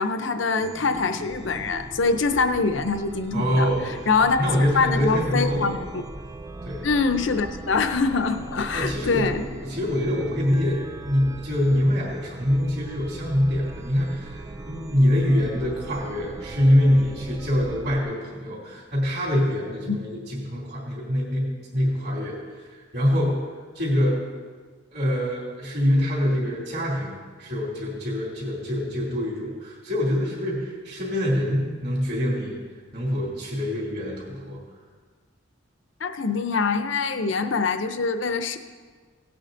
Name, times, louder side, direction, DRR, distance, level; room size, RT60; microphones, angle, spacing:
voice 1, 0.0-3.7 4.1-6.0 6.8-9.4 19.9-20.0 36.0-38.6, left 4 dB, 65° left, 9 dB, 0.7 m, -24 dB
Chime, 0.5-18.0, right 2 dB, 15° right, 0.4 m, -39 dB
voice 2, 3.3-5.7 6.6-6.9 8.7-23.4 23.7-24.2 24.9-32.6 32.9-34.6, equal, 50° right, -7 dB, 2.8 m, -25 dB
17.5 x 8.7 x 3.9 m, 1.5 s
head